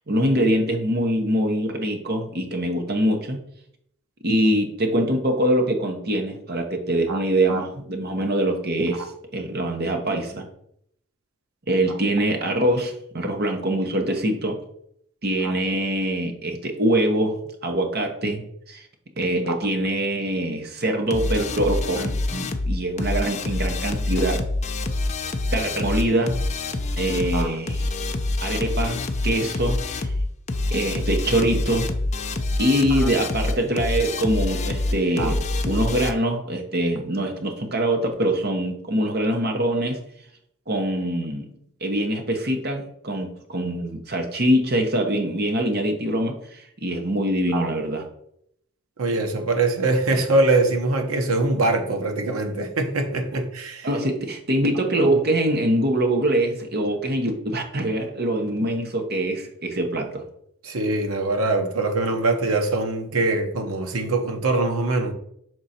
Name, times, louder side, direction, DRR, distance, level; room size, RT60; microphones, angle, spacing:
voice 1, 0.1-3.4 4.2-10.4 11.7-14.6 15.2-18.9 19.2-24.4 25.5-26.4 27.0-27.9 28.4-30.1 30.7-31.9 32.6-40.0 40.7-41.5 41.8-48.0 53.8-60.2, right 1 dB, 45° right, 1.0 m, -24 dB
sound 1, 21.1-36.1, left 2 dB, 30° left, 0.4 m, -26 dB
voice 2, 49.0-53.9 60.6-65.1, right 2 dB, 80° right, 1.0 m, -23 dB
6.2 x 3.9 x 4.2 m
head